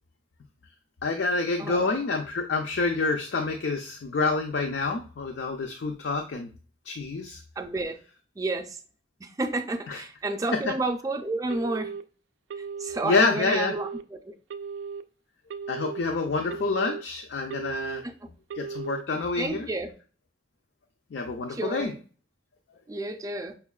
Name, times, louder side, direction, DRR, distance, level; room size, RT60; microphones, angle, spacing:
voice 1, 1.0-6.5 6.9-7.4 9.9-10.0 13.0-13.7 15.7-18.0 18.6-19.7 21.1-21.9, left 3 dB, 75° left, 0.4 m, -27 dB
voice 2, 1.6-1.9 7.6-8.0 8.4-8.8 9.2-11.9 12.8-14.3 18.0-18.3 19.3-19.9 21.5-22.0 22.9-23.5, right 2 dB, 20° right, 0.4 m, -31 dB
Telephone, 11.5-12.0 12.5-13.0 13.5-14.0 14.5-15.0 15.5-16.0 16.5-17.0 17.5-18.0 18.5-19.0, right 5 dB, 90° right, 0.3 m, -36 dB
5.5 x 2.1 x 2.3 m
head